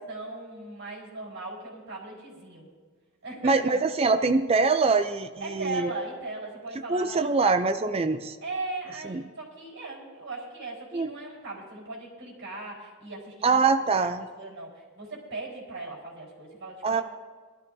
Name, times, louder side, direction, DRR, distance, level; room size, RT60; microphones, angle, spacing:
voice 1, 0.1-2.7 3.2-3.8 5.4-7.7 8.4-17.0, right 3 dB, 55° right, -2 dB, 4.7 m, -38 dB
voice 2, 3.4-5.9 6.9-8.4 9.0-9.2 10.9-11.1 13.4-14.3 16.8-17.0, right 4 dB, 25° right, 8 dB, 0.4 m, -24 dB
20.5 x 13.0 x 2.7 m, 1.5 s
head